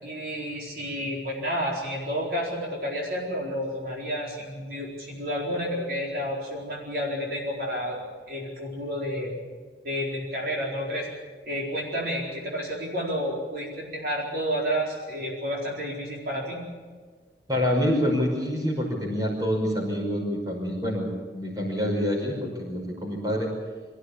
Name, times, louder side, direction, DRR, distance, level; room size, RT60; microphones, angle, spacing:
voice 1, 0.0-8.0 8.3-9.3 9.8-11.1 11.5-16.6, equal, 55° right, -3 dB, 4.4 m, -30 dB
voice 2, 17.5-23.5, equal, 20° right, 0 dB, 5.6 m, -27 dB
25.0 x 15.5 x 8.4 m, 1.5 s
head